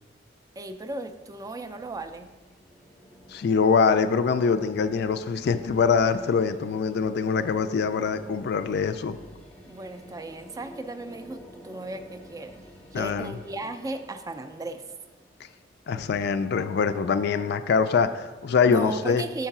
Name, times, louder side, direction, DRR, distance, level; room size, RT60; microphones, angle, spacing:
voice 1, 0.6-2.3 9.7-12.6 12.9-14.8 18.6-19.5, right 2 dB, 20° right, 8 dB, 0.3 m, -36 dB
sound 1, 0.9-15.9, equal, 5° left, 0.8 m, -49 dB
voice 2, 3.3-9.2 12.9-13.3 15.9-19.2, left 5 dB, 60° left, 11 dB, 0.3 m, -24 dB
5.5 x 4.7 x 5.9 m, 1.3 s
head